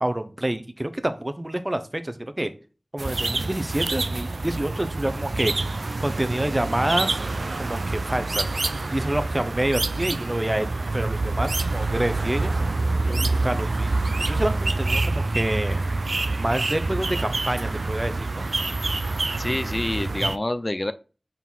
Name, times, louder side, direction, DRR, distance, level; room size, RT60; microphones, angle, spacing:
voice 1, 0.0-2.5 2.9-5.5 6.0-7.2 7.6-8.5 8.9-12.6 13.0-13.9 14.2-15.8 16.4-18.5, right 1 dB, 30° right, 10 dB, 0.7 m, -27 dB
sound 1, 3.0-20.4, right 3 dB, 90° right, 0.3 m, -26 dB
voice 2, 19.4-20.9, left 1 dB, 40° left, 11 dB, 0.4 m, -27 dB
4.6 x 3.8 x 5.5 m, 0.35 s
wide cardioid pair, 55°, 0 cm